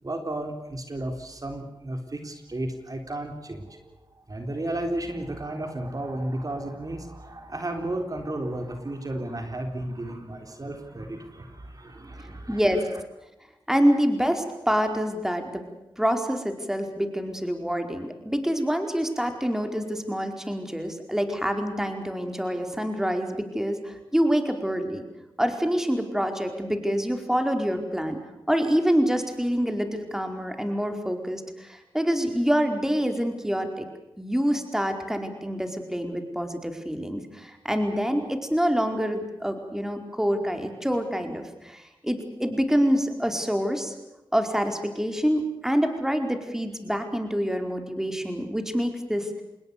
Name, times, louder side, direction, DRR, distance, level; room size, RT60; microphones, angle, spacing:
voice 1, 0.0-12.6, right 1 dB, 45° right, 5 dB, 3.9 m, -33 dB
voice 2, 12.5-12.8 13.7-15.6 16.0-25.0 25.4-28.2 28.5-33.9 34.2-43.9 44.3-49.3, equal, 5° right, 6 dB, 4.7 m, -26 dB
27.5 x 21.0 x 6.8 m, 0.97 s
cardioid pair, 55°, 9 cm